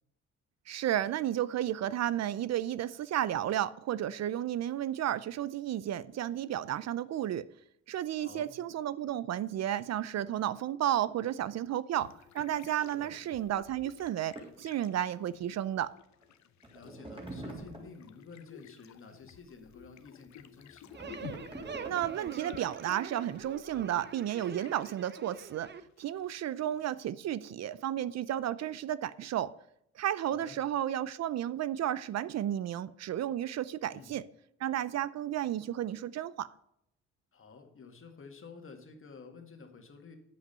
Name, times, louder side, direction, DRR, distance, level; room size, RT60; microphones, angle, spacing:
voice 1, 0.7-7.5 7.9-12.1 12.3-15.9 21.8-25.7 26.0-29.5 30.0-34.2 34.6-36.5, right 11 dB, 60° right, 18 dB, 0.5 m, -32 dB
voice 2, 8.2-8.5 12.9-13.1 16.7-21.1 30.2-30.6 33.9-34.2 37.3-40.2, left 4 dB, 45° left, 4 dB, 2.0 m, -51 dB
sound 1, 12.0-27.0, left 10 dB, 65° left, 0.9 m, -54 dB
sound 2, 14.4-14.6 16.2-16.3 16.6-18.0 20.6-22.4, right 1 dB, 20° right, 3.4 m, -45 dB
sound 3, 20.9-25.8, right 6 dB, 35° right, 0.8 m, -45 dB
8.4 x 7.8 x 5.5 m, 0.76 s
cardioid pair, 90°, 30 cm